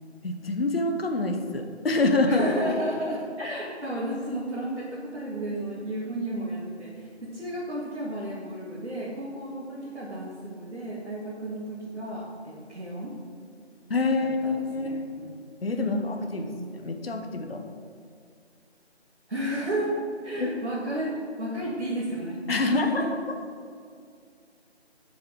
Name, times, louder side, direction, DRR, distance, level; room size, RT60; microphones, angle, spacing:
voice 1, 0.2-2.5 13.9-15.0 15.6-17.6 20.4-20.5 22.5-23.1, left 3 dB, 60° left, 5 dB, 1.2 m, -26 dB
voice 2, 2.2-13.1 14.4-15.3 15.8-16.6 19.3-19.9 20.2-21.1 21.4-23.1, right 1 dB, 70° right, -8 dB, 3.2 m, -32 dB
17.5 x 7.6 x 4.0 m, 2.2 s
figure-of-eight pair, 160°, 34 cm